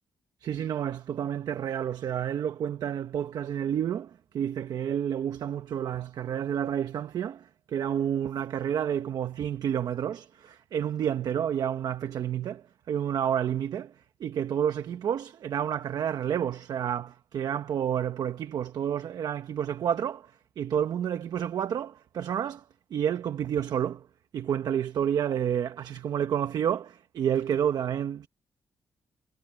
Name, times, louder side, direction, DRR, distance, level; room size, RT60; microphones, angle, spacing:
voice 1, 0.4-24.1 24.3-28.3, right 9 dB, 60° right, 1.1 m, -30 dB
wide cardioid pair, 160°, 8 cm